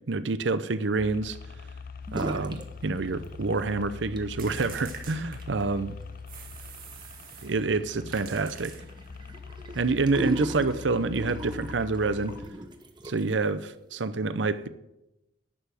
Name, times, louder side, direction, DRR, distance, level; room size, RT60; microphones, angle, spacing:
voice 1, 0.1-1.4 2.1-5.9 7.4-8.7 9.7-12.3 13.0-14.7, right 3 dB, 70° right, 0.7 m, -27 dB
sound 1, 1.0-12.5, left 5 dB, 50° left, 0.6 m, -43 dB
sound 2, 2.1-2.7 2.9-3.6 4.0-13.4, right 1 dB, 25° right, 1.2 m, -39 dB
sound 3, 4.4-5.8 6.3-7.6 8.1-9.2, right 7 dB, 50° right, 2.1 m, -45 dB
11.0 x 7.0 x 9.2 m
head